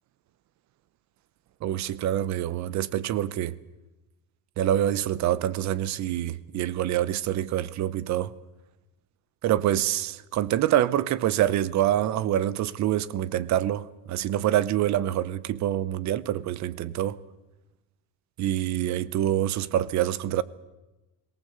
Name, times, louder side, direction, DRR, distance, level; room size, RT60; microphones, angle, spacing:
voice 1, 1.6-3.5 4.6-8.3 9.4-17.2 18.4-20.4, right 12 dB, 40° right, 0.8 m, -26 dB
22.5 x 18.0 x 8.0 m
cardioid pair, 175°, 43 cm